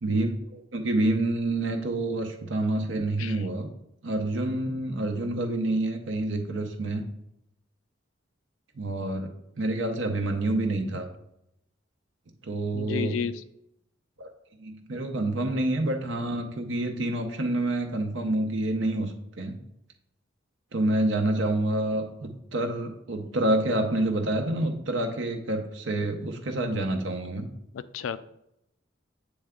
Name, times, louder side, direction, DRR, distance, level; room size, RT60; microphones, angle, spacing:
voice 1, 0.0-3.7 4.0-7.0 8.8-9.3 9.6-11.1 12.4-13.2 14.2-14.3 14.6-19.6 20.7-27.5, right 1 dB, 75° right, 4 dB, 0.7 m, -28 dB
voice 2, 12.7-13.4 27.7-28.2, left 7 dB, 85° left, 14 dB, 0.3 m, -32 dB
7.8 x 3.3 x 3.6 m, 0.80 s
head